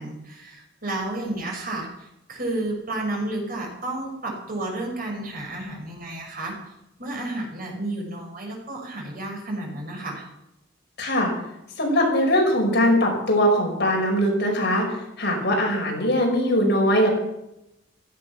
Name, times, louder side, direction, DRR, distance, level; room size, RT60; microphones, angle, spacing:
voice 1, 0.0-6.5 7.0-10.3, right 2 dB, 50° right, 0 dB, 5.5 m, -31 dB
voice 2, 11.0-11.3 11.8-14.9 15.2-17.1, equal, 60° left, 0 dB, 5.6 m, -21 dB
16.0 x 14.0 x 6.1 m, 0.87 s
head